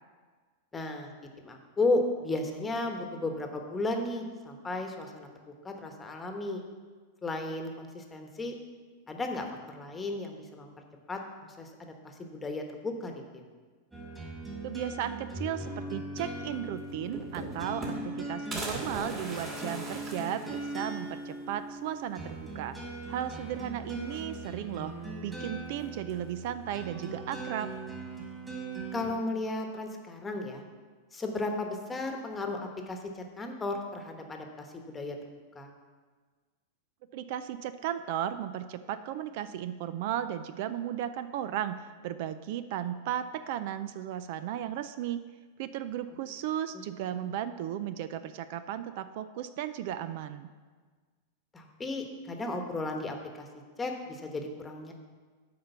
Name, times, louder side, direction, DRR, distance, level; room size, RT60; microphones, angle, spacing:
voice 1, 0.7-1.1 1.4-6.6 7.2-8.6 9.1-10.7 11.1-13.1 28.9-30.6 31.1-32.6 32.9-35.7 51.5-53.5 53.8-54.9, left 2 dB, 15° left, 3 dB, 1.2 m, -34 dB
sound 1, 13.9-29.1, right 2 dB, 10° right, 2.4 m, -40 dB
voice 2, 14.6-22.8 23.1-24.9 25.2-27.7 37.1-41.8 42.0-45.2 45.6-50.5, right 10 dB, 60° right, 12 dB, 0.4 m, -35 dB
sound 2, 16.5-16.6 16.9-18.2 18.5-21.1 21.5-21.6 21.9-22.0 23.1-23.6 24.0-24.7 25.7-26.3, right 1 dB, 30° right, 2.3 m, -40 dB
7.8 x 5.2 x 6.8 m, 1.5 s
hypercardioid pair, 105°, 0 cm